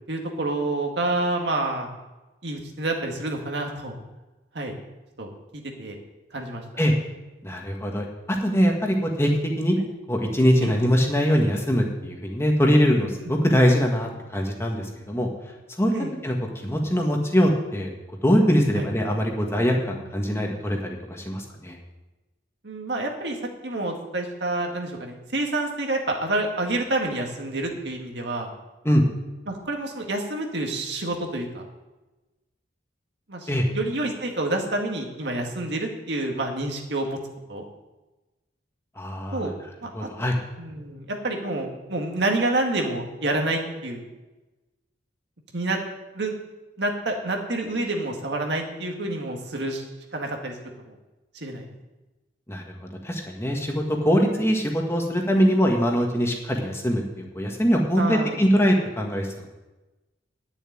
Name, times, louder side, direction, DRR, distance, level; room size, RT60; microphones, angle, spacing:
voice 1, 0.1-1.9 2.4-3.9 4.5-4.7 5.2-6.0 6.3-6.6 9.8-9.9 10.6-10.7 15.9-16.1 18.7-18.9 22.6-23.4 23.6-28.5 29.5-31.6 33.3-33.5 33.7-37.2 37.5-37.6 39.3-39.5 39.8-40.1 40.6-44.0 45.5-45.8 46.1-46.3 46.8-49.8 50.1-50.6 50.9-51.0 51.3-51.7 58.0-58.4, right 2 dB, 65° right, 1 dB, 2.0 m, -28 dB
voice 2, 7.4-9.3 9.6-9.8 10.1-15.3 15.8-15.9 16.2-16.4 16.6-17.9 18.2-21.8 28.8-29.0 33.5-33.7 39.0-39.5 39.9-40.4 52.5-52.7 53.0-59.5, equal, 15° left, 1 dB, 1.6 m, -22 dB
10.0 x 7.1 x 9.2 m, 1.1 s
head